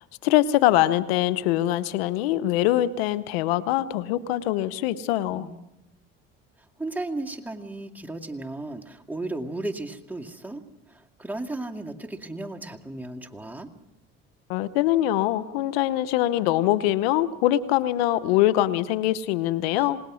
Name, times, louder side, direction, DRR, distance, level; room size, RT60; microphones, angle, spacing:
voice 1, 0.2-5.5 14.5-20.0, left 14 dB, 90° left, 15 dB, 0.9 m, -23 dB
voice 2, 5.3-5.6 6.8-10.6 10.9-13.7 19.7-19.9, right 2 dB, 5° right, 2 dB, 2.3 m, -35 dB
27.5 x 19.5 x 6.3 m, 0.89 s
supercardioid pair, 75°, 30 cm